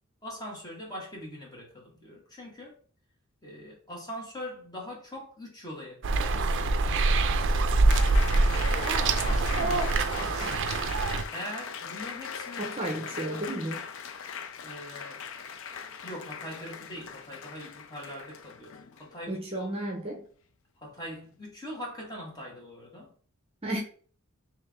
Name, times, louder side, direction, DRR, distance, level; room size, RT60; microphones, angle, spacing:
voice 1, 0.2-2.8 3.4-6.2 8.5-10.9 11.3-13.5 14.6-15.2 16.0-19.7 20.8-23.1, equal, 20° left, 1.4 m, -42 dB
sound 1, 6.0-11.2, right 3 dB, 60° right, 0.4 m, -24 dB
Applause, 7.9-19.2, left 6 dB, 65° left, 0.4 m, -40 dB
voice 2, 12.6-13.8 19.3-20.2 23.6-23.8, right 1 dB, 25° right, 0.7 m, -33 dB
3.4 x 3.2 x 3.5 m
head